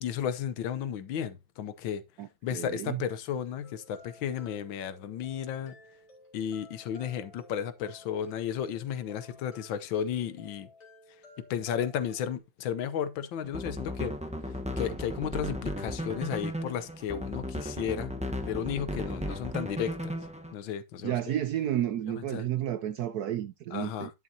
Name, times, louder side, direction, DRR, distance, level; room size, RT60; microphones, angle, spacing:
voice 1, 0.0-2.0 2.4-5.7 6.3-10.7 11.4-14.1 14.8-18.2 18.4-20.2 20.5-21.3 22.2-22.5 23.7-24.1, left 9 dB, 75° left, 1.6 m, -33 dB
voice 2, 2.2-3.0 21.0-24.1, right 11 dB, 70° right, 1.0 m, -31 dB
sound 1, 3.6-12.4, left 2 dB, 40° left, 3.4 m, -55 dB
sound 2, 13.4-20.5, equal, 10° right, 0.4 m, -35 dB
10.5 x 7.5 x 2.7 m
omnidirectional pair, 2.1 m